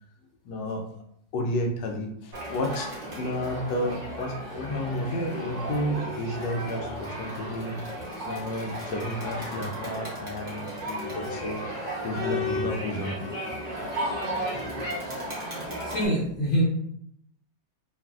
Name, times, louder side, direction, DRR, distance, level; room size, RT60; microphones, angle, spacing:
voice 1, 0.4-0.8 1.3-7.8 8.2-11.6 12.0-13.1, left 1 dB, 75° left, 2 dB, 1.2 m, -31 dB
Crowd, 2.3-16.0, equal, 35° right, 0.6 m, -34 dB
voice 2, 15.8-16.7, right 1 dB, 55° left, -8 dB, 1.0 m, -25 dB
3.0 x 2.4 x 2.3 m, 0.71 s
omnidirectional pair, 2.0 m